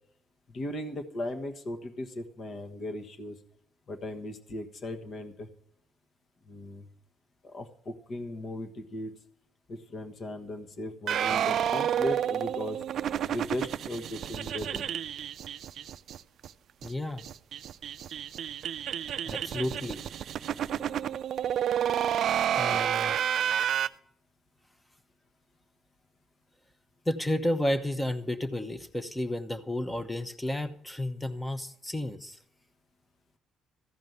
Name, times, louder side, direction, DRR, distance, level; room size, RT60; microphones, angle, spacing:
voice 1, 0.5-3.4 3.9-5.5 6.5-6.9 7.4-9.1 9.7-12.8 13.3-14.9, left 1 dB, 50° left, 6 dB, 1.3 m, -37 dB
sound 1, 11.1-16.2 16.4-16.5 16.8-16.9 17.2-23.9, right 9 dB, 65° right, 0.4 m, -30 dB
voice 2, 16.8-17.2 19.3-20.0 22.6-23.2 27.1-32.4, left 1 dB, 10° left, 10 dB, 0.9 m, -32 dB
14.5 x 5.3 x 9.3 m, 0.70 s
cardioid pair, 100°, 0 cm